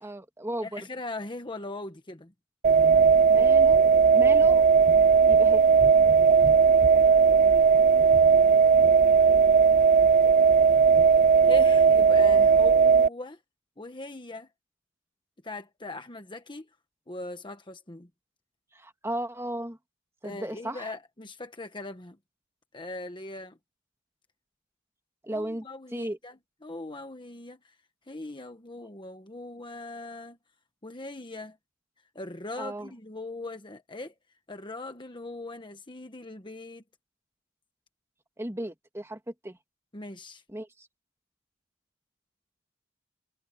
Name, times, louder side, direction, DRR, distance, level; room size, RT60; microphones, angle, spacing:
voice 1, 0.0-0.9 3.3-3.8 4.1-4.7 5.3-5.6 18.7-19.8 20.2-20.9 25.2-25.7 25.9-26.2 32.6-32.9 38.4-39.6 40.5-40.9, right 1 dB, 15° right, 2.3 m, -35 dB
voice 2, 0.6-2.3 11.4-13.4 13.8-14.5 15.4-16.7 17.1-18.1 20.2-22.2 22.7-23.6 25.3-27.6 28.1-30.4 30.8-31.6 32.1-34.1 34.5-36.8 39.9-40.4, left 2 dB, 25° left, 1.3 m, -40 dB
sound 1, 2.6-13.1, right 6 dB, 40° right, 0.5 m, -18 dB
head